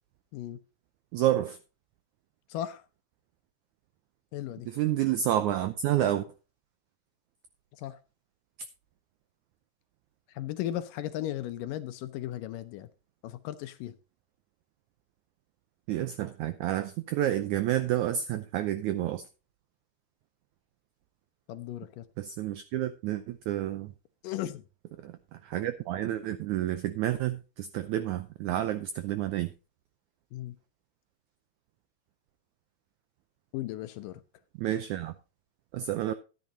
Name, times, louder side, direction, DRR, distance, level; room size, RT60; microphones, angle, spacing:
voice 1, 1.1-1.6 4.7-6.3 15.9-19.3 22.2-23.9 25.0-29.5 34.6-35.1 35.7-36.1, right 12 dB, 85° right, 1.7 m, -29 dB
voice 2, 2.5-2.8 4.3-4.7 7.7-8.0 10.3-12.9 13.2-14.0 21.5-22.1 24.2-24.6 30.3-30.6 33.5-34.2, left 13 dB, 75° left, 2.1 m, -36 dB
13.0 x 10.5 x 2.8 m
omnidirectional pair, 4.3 m